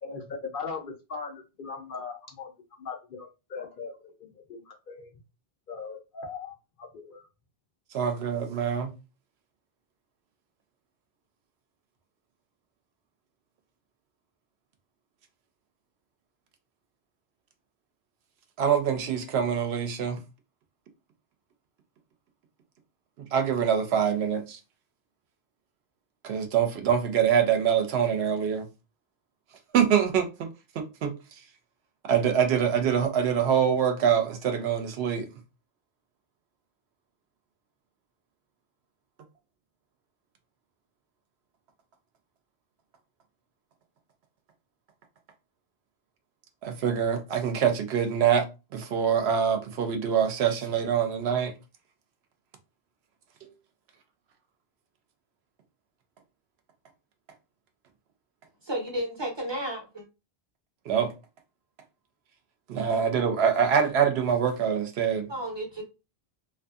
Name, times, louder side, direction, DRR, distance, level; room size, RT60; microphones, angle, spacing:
voice 1, 0.0-2.5 2.8-5.1 5.7-7.2, left 5 dB, 60° left, 0.7 m, -39 dB
voice 2, 7.9-8.9 18.6-20.2 23.3-24.6 26.2-28.6 29.7-30.5 30.8-31.1 32.0-35.3 46.6-48.4 48.7-51.5 60.9-61.1 62.7-65.3, right 8 dB, 75° right, 0.8 m, -25 dB
voice 3, 58.6-60.0 65.3-65.8, right 1 dB, 30° right, 0.6 m, -32 dB
2.6 x 2.4 x 2.3 m
omnidirectional pair, 1.1 m